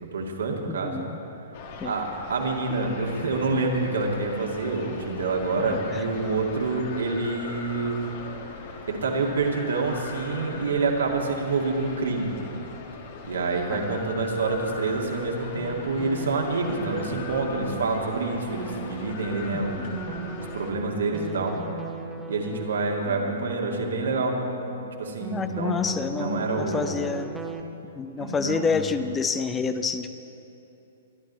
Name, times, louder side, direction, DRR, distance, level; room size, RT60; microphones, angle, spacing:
voice 1, 0.0-1.0 1.8-8.0 8.9-12.3 13.2-19.8 20.1-21.6 22.3-24.4 25.0-27.0 28.2-28.9, right 3 dB, 70° right, 0 dB, 2.2 m, -27 dB
voice 2, 0.7-1.2 1.8-1.9 5.6-6.1 13.7-14.0 19.5-20.0 25.3-27.3 28.0-30.1, left 5 dB, 15° left, 10 dB, 0.6 m, -29 dB
sound 1, 1.5-20.7, left 4 dB, 50° left, 1.7 m, -40 dB
sound 2, 15.6-27.6, right 4 dB, 5° right, 1.0 m, -38 dB
23.0 x 11.5 x 4.1 m, 2.8 s
figure-of-eight pair, 115°, 0 cm